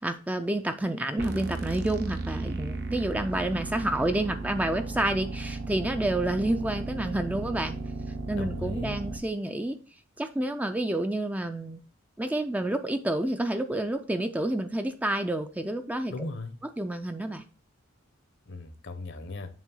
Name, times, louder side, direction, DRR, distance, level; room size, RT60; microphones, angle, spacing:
voice 1, 0.0-7.8 8.3-9.8 10.2-11.8 12.2-16.1 16.8-17.4, right 1 dB, 5° right, 0.4 m, -29 dB
sound 1, 1.2-9.2, right 3 dB, 55° right, 0.8 m, -35 dB
voice 2, 8.3-9.0 16.1-16.6 18.5-19.5, left 3 dB, 60° left, 0.9 m, -37 dB
7.3 x 3.0 x 5.5 m
head